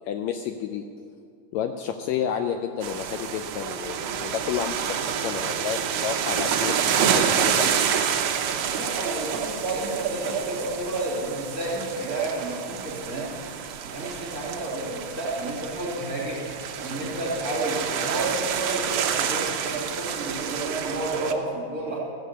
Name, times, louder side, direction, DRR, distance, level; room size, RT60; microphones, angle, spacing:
voice 1, 0.1-0.8 1.5-7.8, left 8 dB, 90° left, 6 dB, 1.5 m, -30 dB
sound 1, 2.8-21.3, right 8 dB, 85° right, 1.3 m, -28 dB
voice 2, 8.7-13.3 13.9-16.4 16.8-22.0, right 2 dB, 25° right, -5 dB, 3.1 m, -30 dB
14.5 x 6.8 x 8.4 m, 2.3 s
omnidirectional pair, 3.8 m